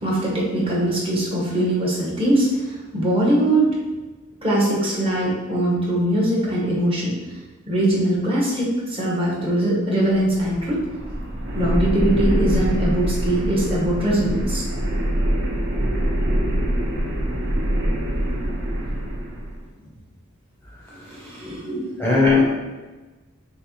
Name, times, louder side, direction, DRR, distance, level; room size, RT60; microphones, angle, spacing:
voice 1, 0.0-3.8 4.4-7.2 7.7-10.8 11.5-14.6 20.9-22.0 22.2-22.4, right 1 dB, 25° right, -5 dB, 1.0 m, -21 dB
sound 1, 10.1-19.6, right 1 dB, 60° right, 0.7 m, -24 dB
voice 2, 20.7-21.7 22.0-22.5, left 4 dB, 10° left, -6 dB, 0.6 m, -21 dB
5.9 x 2.1 x 3.0 m, 1.2 s
head